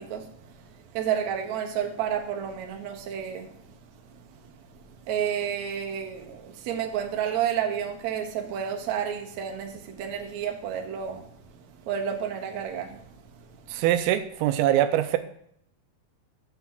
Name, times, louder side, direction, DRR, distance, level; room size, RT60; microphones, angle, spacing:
voice 1, 0.0-3.7 4.0-4.5 5.1-11.3 11.5-13.2 13.7-13.8, right 8 dB, 65° right, 2.0 m, -31 dB
voice 2, 13.7-15.2, right 12 dB, 85° right, 2.5 m, -23 dB
6.9 x 5.9 x 7.5 m
omnidirectional pair, 4.4 m